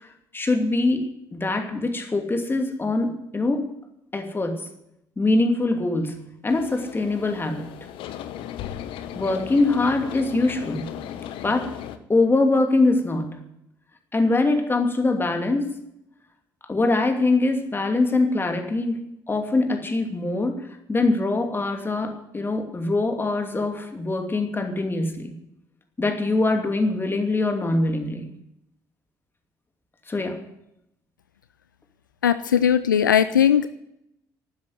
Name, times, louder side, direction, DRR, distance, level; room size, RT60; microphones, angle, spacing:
voice 1, 0.3-1.0 1.3-3.7 4.1-4.6 5.2-7.7 9.1-10.8 11.4-11.7 12.1-13.4 14.1-15.7 16.7-19.0 19.3-20.6 20.9-25.3 26.0-28.3 30.1-30.4, left 2 dB, 20° left, 5 dB, 2.7 m, -23 dB
sound 1, 6.5-12.0, left 10 dB, 55° left, 1.0 m, -36 dB
voice 2, 32.2-33.7, left 9 dB, 80° left, 14 dB, 0.4 m, -19 dB
12.0 x 10.0 x 9.5 m, 0.81 s
figure-of-eight pair, 50°, 10 cm